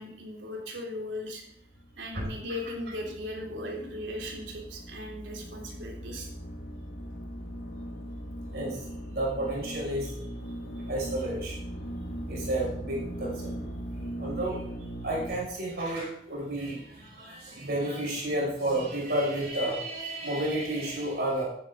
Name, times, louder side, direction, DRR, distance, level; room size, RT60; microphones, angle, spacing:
voice 1, 0.0-1.4 2.0-6.3 10.8-10.9, left 1 dB, 80° right, -1 dB, 3.4 m, -38 dB
sound 1, 1.6-15.4, right 1 dB, 60° left, 2.3 m, -39 dB
voice 2, 9.1-10.1 10.9-11.6 12.3-13.6 14.2-14.6 15.0-21.4, right 1 dB, 55° right, -4 dB, 5.9 m, -31 dB
14.5 x 10.5 x 3.8 m, 0.72 s
head